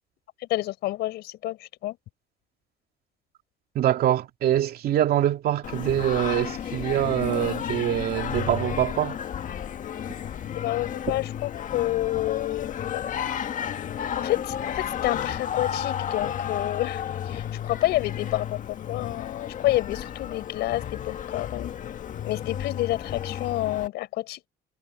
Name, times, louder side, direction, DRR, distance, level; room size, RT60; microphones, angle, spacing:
voice 1, 0.5-1.9 10.6-13.0 14.2-17.0 17.3-21.7 22.2-24.5, left 16 dB, 80° left, 5.0 m, -29 dB
voice 2, 3.7-9.2, right 11 dB, 65° right, 2.6 m, -24 dB
Singing, 5.6-23.9, left 9 dB, 50° left, 1.5 m, -32 dB
cardioid pair, 110°, 17 cm